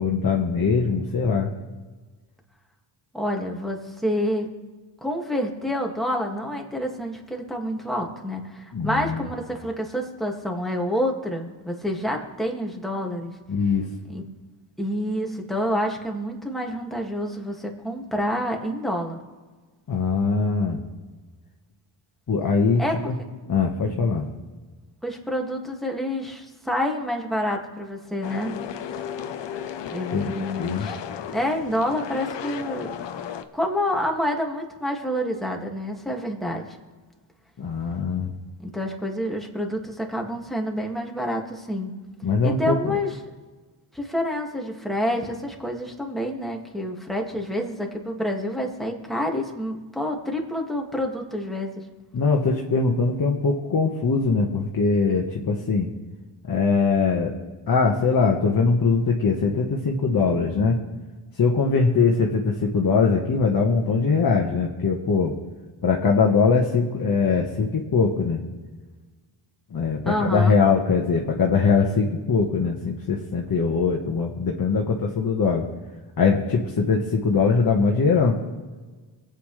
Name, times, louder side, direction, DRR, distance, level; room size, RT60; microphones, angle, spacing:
voice 1, 0.0-1.5 8.7-9.2 13.5-13.9 19.9-20.8 22.3-23.1 23.5-24.3 30.1-30.3 30.6-30.9 37.6-38.3 42.2-42.9 52.1-55.9 56.5-57.3 57.7-60.8 61.4-65.4 65.8-68.4 69.7-75.7 76.2-78.4, left 4 dB, 45° left, 0 dB, 1.5 m, -22 dB
voice 2, 3.1-4.5 5.0-13.3 14.1-14.3 14.8-19.2 22.8-23.1 25.0-28.6 29.9-31.0 31.3-33.0 33.5-36.6 38.6-41.9 42.4-43.1 43.9-51.7 70.1-70.6, equal, ahead, 0 dB, 2.1 m, -28 dB
sound 1, 28.2-33.4, left 8 dB, 60° left, 0.9 m, -34 dB
24.0 x 8.5 x 3.3 m, 1.3 s
cardioid pair, 80°, 48 cm